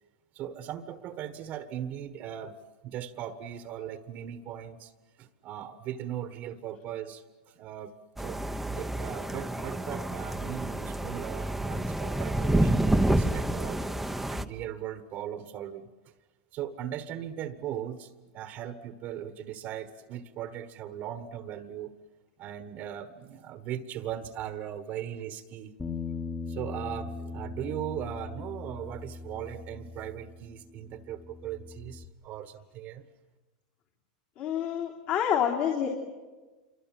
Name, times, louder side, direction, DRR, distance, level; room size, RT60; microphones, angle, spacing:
voice 1, 0.3-2.5 2.8-4.9 5.2-8.4 8.7-14.0 14.3-15.9 16.5-21.9 22.4-25.7 26.5-33.0, right 10 dB, 45° right, 10 dB, 1.4 m, -38 dB
sound 1, 8.2-14.4, right 1 dB, 5° right, 1.0 m, -29 dB
Bass guitar, 25.8-32.0, left 4 dB, 15° left, 1.5 m, -40 dB
voice 2, 34.4-35.9, left 9 dB, 50° left, -2 dB, 3.6 m, -27 dB
27.5 x 24.5 x 7.6 m, 1.3 s
supercardioid pair, 120°, 4 cm